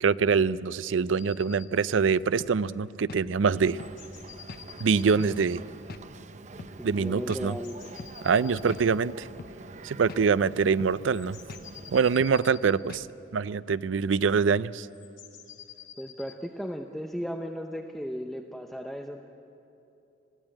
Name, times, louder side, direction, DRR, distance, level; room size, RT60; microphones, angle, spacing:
voice 1, 0.0-3.8 4.8-5.6 6.8-7.5 8.2-9.3 9.8-11.4 11.9-13.1 13.3-14.9, right 5 dB, 80° right, 17 dB, 0.4 m, -24 dB
sound 1, 1.2-1.7 3.7-5.3 7.4-8.9 10.9-12.8 14.9-16.4, left 9 dB, 85° left, 2.1 m, -49 dB
sound 2, 2.4-2.6 3.1-3.3 3.8-4.0 4.5-4.7 5.2-5.4 5.9-6.1 6.6-6.8 7.3-7.5 8.0-8.2 8.7-8.9 9.4-9.6 10.1-10.3 10.8-11.0 11.5-11.7 12.2-12.4 12.9-13.1, left 3 dB, 55° left, 0.7 m, -43 dB
Boat Water vehicle, 3.5-12.2, right 3 dB, 40° right, 0.6 m, -46 dB
voice 2, 6.8-8.0 8.3-8.8 16.0-19.2, equal, ahead, 4 dB, 0.7 m, -36 dB
21.0 x 15.5 x 8.9 m, 2.9 s
head